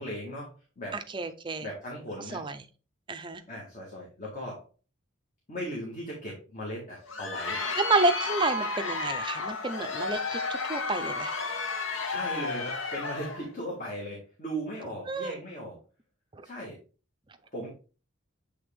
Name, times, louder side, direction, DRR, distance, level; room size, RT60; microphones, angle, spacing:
voice 1, 0.0-1.0 1.6-2.4 3.5-4.6 5.5-7.6 12.1-15.8 16.4-16.8 17.5-17.7, equal, 35° left, -3 dB, 1.7 m, -38 dB
voice 2, 0.9-1.7 2.3-2.6 3.1-3.4 7.8-11.3 15.1-15.3 16.3-16.4, right 3 dB, 25° right, 8 dB, 0.5 m, -30 dB
Crowd, 6.9-13.5, left 3 dB, 70° left, 1.0 m, -32 dB
7.8 x 3.5 x 3.5 m, 0.35 s
head